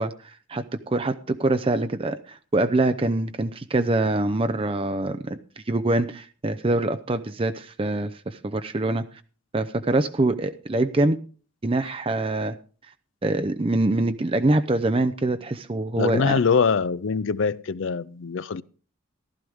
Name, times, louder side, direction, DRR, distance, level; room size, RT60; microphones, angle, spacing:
voice 1, 0.0-9.0 9.5-11.2 11.6-12.6 13.2-16.4, right 2 dB, 25° right, 0.5 m, -24 dB
voice 2, 16.0-18.6, left 5 dB, 65° left, 0.5 m, -23 dB
15.0 x 12.5 x 3.5 m
head